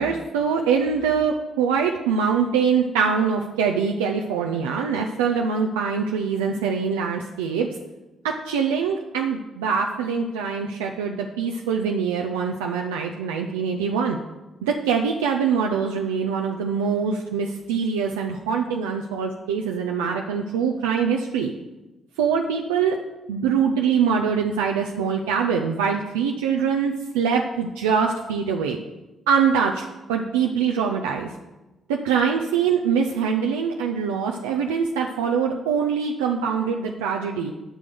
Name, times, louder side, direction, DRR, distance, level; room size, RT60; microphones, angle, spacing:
voice 1, 0.0-7.7 8.2-14.2 14.6-21.5 22.2-23.0 23.3-28.8 29.3-29.8 30.1-31.3 31.9-37.5, right 6 dB, 85° right, 1 dB, 0.6 m, -23 dB
9.1 x 6.2 x 6.8 m, 1.1 s
hypercardioid pair, 45°, 0 cm